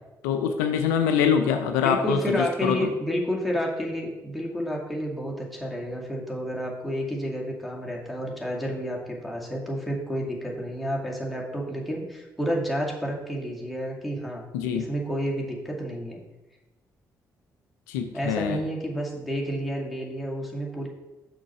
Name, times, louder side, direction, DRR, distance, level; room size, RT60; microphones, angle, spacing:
voice 1, 0.2-2.8 14.5-14.9 17.9-18.6, left 7 dB, 75° left, 7 dB, 0.4 m, -24 dB
voice 2, 1.8-14.4 14.7-16.2 18.1-20.9, equal, ahead, -3 dB, 2.2 m, -30 dB
6.1 x 4.5 x 5.5 m, 1.0 s
figure-of-eight pair, 40°, 10 cm